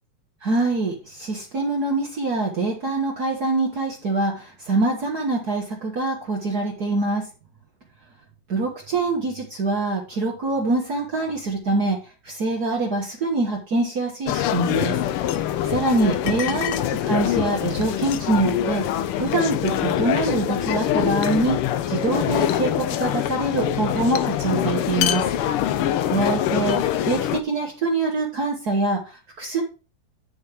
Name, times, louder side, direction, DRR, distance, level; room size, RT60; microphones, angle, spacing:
voice 1, 0.4-7.2 8.5-12.0 12.2-15.0 15.7-21.6 21.9-25.2 26.0-26.8 27.0-29.6, right 3 dB, 50° right, -1 dB, 1.9 m, -24 dB
sound 1, 14.3-27.4, left 11 dB, 90° left, 1.6 m, -24 dB
9.4 x 6.9 x 3.5 m, 0.34 s
omnidirectional pair, 2.4 m